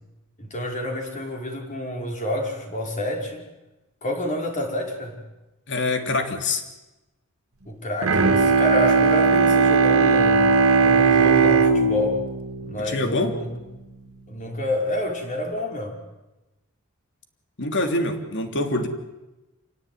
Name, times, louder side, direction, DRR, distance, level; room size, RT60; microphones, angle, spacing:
voice 1, 0.4-3.5 4.0-5.2 7.7-10.5 10.8-12.2 12.6-13.6 14.3-16.0, left 1 dB, 35° left, 1 dB, 5.5 m, -28 dB
voice 2, 5.7-6.6 12.8-13.4 17.6-18.9, left 2 dB, 55° left, 5 dB, 3.1 m, -25 dB
Bowed string instrument, 8.0-13.6, right 4 dB, 80° right, 2.3 m, -19 dB
28.0 x 18.0 x 9.6 m, 1.0 s
head